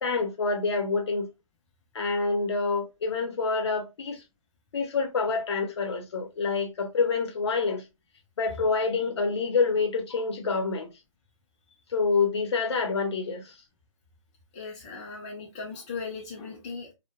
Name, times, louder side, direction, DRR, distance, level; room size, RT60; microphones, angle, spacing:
voice 1, 0.0-1.3 1.9-4.2 4.7-7.8 8.4-10.9 11.9-13.5, left 4 dB, 50° left, 0.7 m, -27 dB
voice 2, 14.5-16.9, left 4 dB, 15° left, 0.4 m, -38 dB
2.2 x 2.1 x 2.8 m
hypercardioid pair, 150°, 17 cm